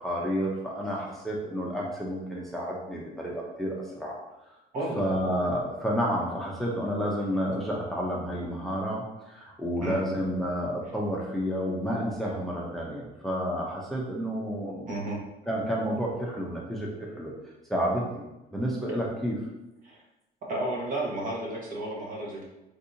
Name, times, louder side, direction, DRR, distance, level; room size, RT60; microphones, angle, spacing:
voice 1, 0.0-4.1 5.0-9.0 9.3-14.9 15.5-17.3 17.7-18.2 18.5-19.4, equal, ahead, -4 dB, 0.6 m, -30 dB
voice 2, 4.7-5.0 9.8-10.0 14.9-15.2 19.8-20.0 20.5-22.4, right 1 dB, 50° right, -2 dB, 1.0 m, -32 dB
3.6 x 2.7 x 2.6 m, 0.97 s
cardioid pair, 110°, 17 cm